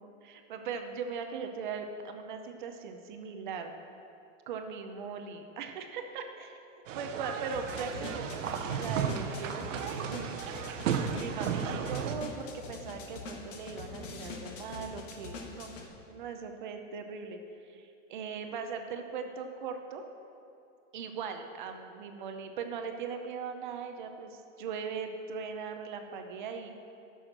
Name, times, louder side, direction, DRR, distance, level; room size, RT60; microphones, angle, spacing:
voice 1, 0.0-3.7 4.5-10.5 10.9-15.7 16.1-17.4 17.7-20.0 20.9-26.7, right 6 dB, 40° right, 6 dB, 0.7 m, -39 dB
sound 1, 6.9-12.2, right 7 dB, 80° right, 0.9 m, -34 dB
sound 2, 7.5-15.9, left 4 dB, 75° left, 1.5 m, -44 dB
10.0 x 6.4 x 6.5 m, 2.7 s
supercardioid pair, 175°, 38 cm